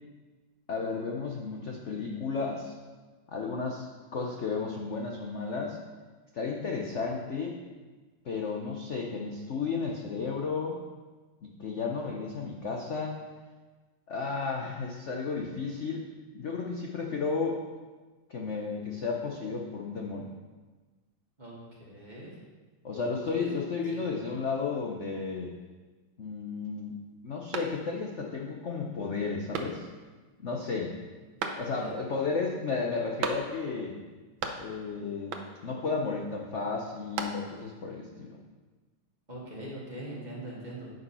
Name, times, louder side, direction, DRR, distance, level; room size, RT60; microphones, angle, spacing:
voice 1, 0.7-2.7 3.3-5.8 6.3-7.6 8.2-10.8 11.4-13.2 14.1-16.0 16.3-17.6 18.3-20.3 22.8-25.5 26.2-26.9 27.2-29.9 30.4-30.9 31.5-34.0 34.6-35.3 35.6-38.3, left 4 dB, 55° left, 0 dB, 0.8 m, -33 dB
voice 2, 21.4-22.3 23.4-23.5 23.9-24.0 31.7-31.9 39.3-40.9, right 1 dB, 20° right, -5 dB, 1.8 m, -42 dB
sound 1, 27.5-28.2 28.6-28.7 29.5-30.1 31.4-32.0 33.2-33.8 34.1-34.9 35.3-35.8 36.8-37.7, right 5 dB, 70° right, 1.5 m, -37 dB
9.0 x 5.3 x 5.6 m, 1.3 s
omnidirectional pair, 2.3 m